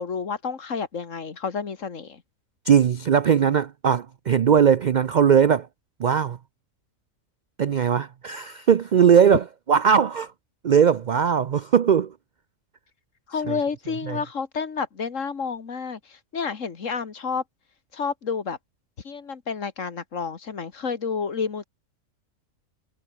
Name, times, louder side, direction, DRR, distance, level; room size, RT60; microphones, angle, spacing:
voice 1, 0.0-2.2 13.3-17.4 17.9-18.6 19.0-21.7, left 5 dB, 65° left, 2.1 m, -30 dB
voice 2, 2.6-5.7 6.0-6.4 7.6-10.3 10.6-12.1 13.5-13.6 14.1-14.2, right 7 dB, 60° right, 0.4 m, -19 dB
omnidirectional pair, 1.4 m